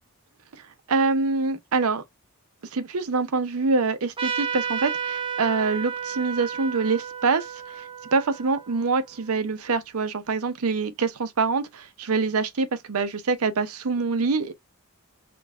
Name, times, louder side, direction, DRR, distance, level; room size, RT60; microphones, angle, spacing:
voice 1, 0.9-2.0 2.7-14.5, right 4 dB, 75° right, 0.6 m, -25 dB
Trumpet, 4.2-9.3, right 7 dB, 25° right, 0.5 m, -32 dB
3.7 x 2.3 x 3.5 m
head